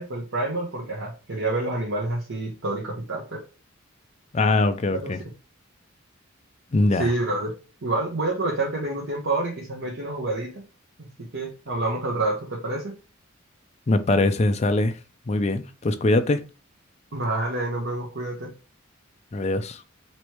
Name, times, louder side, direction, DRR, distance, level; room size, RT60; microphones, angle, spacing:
voice 1, 0.0-3.4 4.9-5.1 6.9-7.5 7.8-10.6 11.3-12.9 17.1-18.5, right 2 dB, 65° right, 1.0 m, -28 dB
voice 2, 4.3-5.2 6.7-7.1 13.9-14.9 15.3-16.4 19.3-19.8, left 2 dB, 30° left, 0.4 m, -22 dB
3.1 x 3.1 x 4.5 m
head